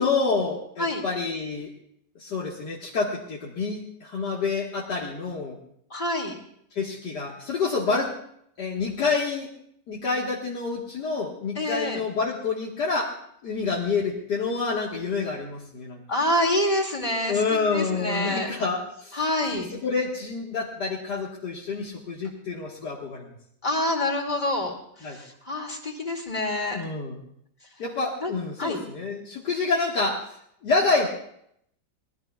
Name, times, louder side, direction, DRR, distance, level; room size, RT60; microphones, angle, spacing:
voice 1, 0.0-1.7 2.2-5.6 6.7-8.1 8.6-9.5 9.9-13.1 13.4-16.0 17.3-19.2 19.7-23.3 25.0-25.2 26.7-27.2 27.8-30.2 30.6-31.1, left 4 dB, 75° left, -3 dB, 2.2 m, -28 dB
voice 2, 5.9-6.3 11.6-12.0 16.1-17.4 17.7-18.5 19.1-19.7 23.6-26.8 28.2-28.3 28.6-28.8, left 1 dB, 25° left, 1 dB, 2.4 m, -27 dB
24.5 x 18.5 x 2.3 m, 0.70 s
omnidirectional pair, 1.8 m